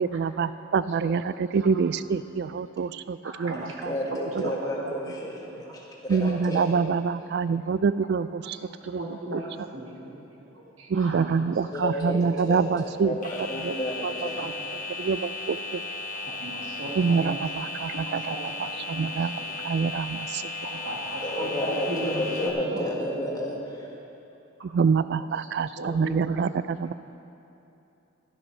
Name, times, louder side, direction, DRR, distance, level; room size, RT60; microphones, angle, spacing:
voice 1, 0.0-1.2 1.5-3.5 6.1-8.6 8.9-9.1 9.3-9.4 10.9-13.7 14.0-14.5 15.0-15.8 17.0-18.2 18.9-19.3 19.6-20.5 24.7-26.9, right 5 dB, 55° right, 15 dB, 0.3 m, -26 dB
voice 2, 1.0-1.7 3.2-4.8 5.4-5.7 8.4-10.1 10.4-11.5 12.2-12.3 14.4-14.5 14.8-14.9 16.1-17.4 17.9-19.5 20.0-20.1 20.6-22.8 24.6-24.8 25.4-26.4, right 1 dB, 80° right, 0 dB, 1.7 m, -38 dB
voice 3, 3.8-5.4 6.0-6.2 6.5-6.7 11.7-14.4 21.2-23.9, equal, 20° left, -4 dB, 1.8 m, -31 dB
sound 1, 13.2-22.5, left 2 dB, 40° left, 1.3 m, -35 dB
12.5 x 8.6 x 5.8 m, 2.9 s
head